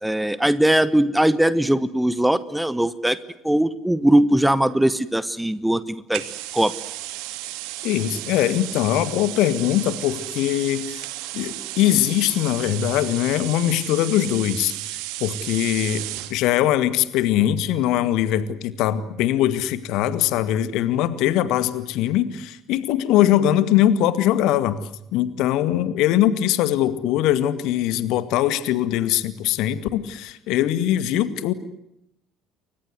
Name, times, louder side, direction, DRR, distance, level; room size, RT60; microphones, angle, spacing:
voice 1, 0.0-3.2 3.4-6.2 6.5-6.7, right 1 dB, 5° right, 15 dB, 1.4 m, -20 dB
sound 1, 6.1-16.4, right 17 dB, 60° right, 2.6 m, -33 dB
voice 2, 7.8-11.0 11.3-16.0 16.3-24.8 25.1-31.5, left 12 dB, 55° left, 13 dB, 2.0 m, -21 dB
29.5 x 24.0 x 8.0 m, 0.80 s
figure-of-eight pair, 55°, 0 cm